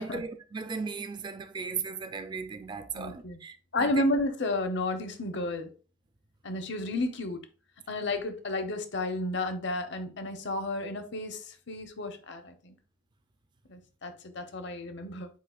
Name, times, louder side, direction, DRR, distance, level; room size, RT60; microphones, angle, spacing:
voice 1, 0.0-3.9, right 5 dB, 25° right, 0.4 m, -37 dB
voice 2, 2.9-3.4 3.7-5.7 6.4-7.4 7.9-12.7 13.7-15.3, left 2 dB, 65° left, 0.8 m, -32 dB
8.0 x 2.8 x 2.3 m
head